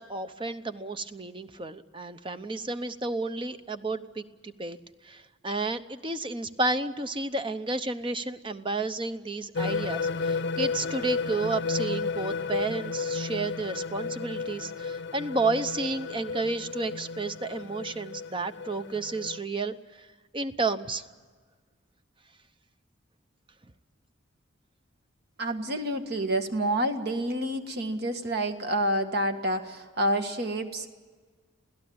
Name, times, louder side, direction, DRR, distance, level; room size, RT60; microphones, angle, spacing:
voice 1, 0.0-4.8 5.0-20.1 20.3-21.0, right 3 dB, 25° right, 10 dB, 0.8 m, -31 dB
sound 1, 9.5-19.4, left 4 dB, 55° left, 0.7 m, -33 dB
voice 2, 25.4-30.9, right 1 dB, 50° right, 6 dB, 1.7 m, -28 dB
27.5 x 17.0 x 8.7 m, 1.5 s
head